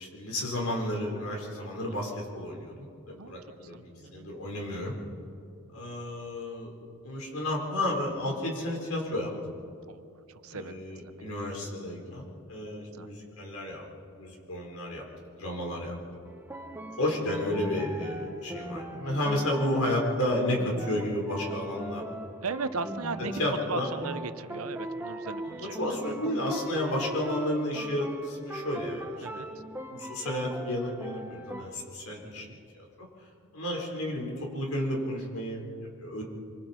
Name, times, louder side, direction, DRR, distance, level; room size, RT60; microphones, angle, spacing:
voice 1, 0.0-4.9 5.7-6.7 7.0-9.3 10.5-13.8 14.2-15.0 15.4-16.0 17.0-22.0 23.4-23.9 25.4-32.5 32.7-33.1 33.5-36.2, left 1 dB, 90° left, -1 dB, 4.7 m, -32 dB
voice 2, 3.2-4.3 9.9-11.3 11.6-12.2 12.9-13.1 22.4-26.3 29.2-29.6 32.3-32.6, right 4 dB, 85° right, 12 dB, 0.9 m, -39 dB
sound 1, 16.3-31.6, right 1 dB, 10° right, 0.9 m, -40 dB
26.0 x 24.5 x 4.5 m, 2.6 s
head